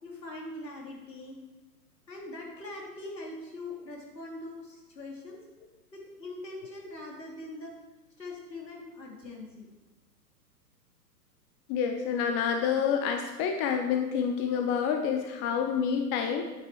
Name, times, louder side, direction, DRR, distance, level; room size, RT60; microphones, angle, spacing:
voice 1, 0.0-1.4 2.1-5.4 5.9-7.7 8.2-9.7, left 2 dB, 90° left, -1 dB, 3.5 m, -42 dB
voice 2, 11.7-16.4, left 7 dB, 25° left, 5 dB, 0.7 m, -28 dB
9.8 x 8.8 x 4.7 m, 1.2 s
hypercardioid pair, 120°, 48 cm